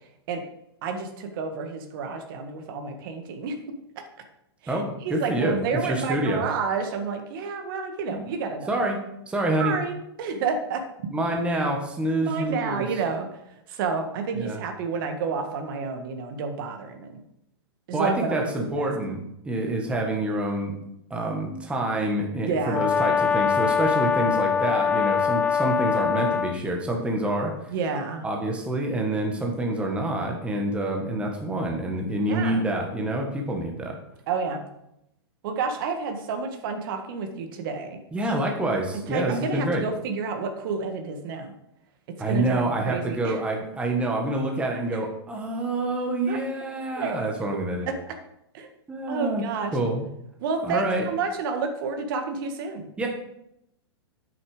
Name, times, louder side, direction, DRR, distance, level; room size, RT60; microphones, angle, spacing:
voice 1, 0.8-3.8 4.6-4.8 5.0-8.8 9.6-10.8 12.2-13.3 13.7-17.2 17.9-18.4 18.7-18.9 22.5-22.9 27.7-28.2 32.3-32.7 34.3-34.6 35.4-38.0 39.1-41.5 42.3-43.4 44.9-45.0 46.3-46.4 47.0-47.2 47.5-47.6 47.9-48.1 48.5-48.7 49.1-49.7 50.4-52.9, right 5 dB, 55° right, 6 dB, 1.8 m, -30 dB
voice 2, 4.7-5.6 5.8-6.4 8.1-8.3 8.7-9.0 9.3-9.7 11.1-12.8 14.4-14.6 17.9-20.7 21.1-27.5 28.2-34.0 38.1-39.8 42.2-47.9 48.9-49.4 49.7-50.0 50.6-51.0 53.0-53.1, right 1 dB, 10° right, 1 dB, 1.7 m, -27 dB
Brass instrument, 22.7-26.6, left 6 dB, 10° left, 0.4 m, -23 dB
9.7 x 8.3 x 5.1 m, 0.80 s
hypercardioid pair, 145°, 14 cm